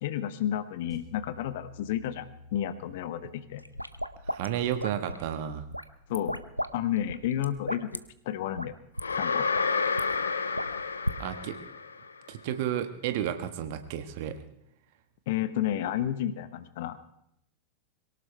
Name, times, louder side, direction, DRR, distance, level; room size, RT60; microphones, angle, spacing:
voice 1, 0.0-3.6 6.1-6.4 6.7-8.8 9.1-9.5 15.3-17.0, left 11 dB, 55° left, 13 dB, 1.1 m, -31 dB
sound 1, 0.9-5.2, left 2 dB, 15° right, 4.7 m, -52 dB
sound 2, 3.6-5.3 5.7-6.7 7.0-8.0 8.5-8.7 9.0-9.1 9.4-10.0 10.6-11.2, equal, 90° right, 0.6 m, -35 dB
voice 2, 4.3-5.7 11.2-11.6 12.3-14.4, right 10 dB, 50° right, 9 dB, 1.5 m, -32 dB
sound 3, 9.0-12.1, left 4 dB, 75° left, 0.9 m, -30 dB
23.0 x 18.0 x 3.4 m, 0.78 s
figure-of-eight pair, 90°, 0 cm